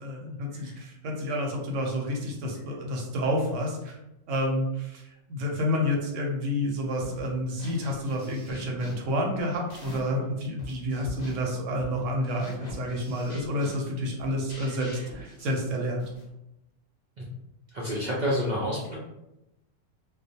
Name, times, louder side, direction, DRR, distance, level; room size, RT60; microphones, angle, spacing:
voice 1, 0.0-4.0 4.3-16.1, left 1 dB, 80° right, 0 dB, 1.0 m, -29 dB
sound 1, 7.0-7.3 7.6-10.2 10.6-16.3, left 1 dB, 60° left, 0.9 m, -45 dB
voice 2, 17.7-19.0, equal, 60° right, -5 dB, 0.4 m, -28 dB
2.4 x 2.0 x 2.7 m, 0.89 s
omnidirectional pair, 1.3 m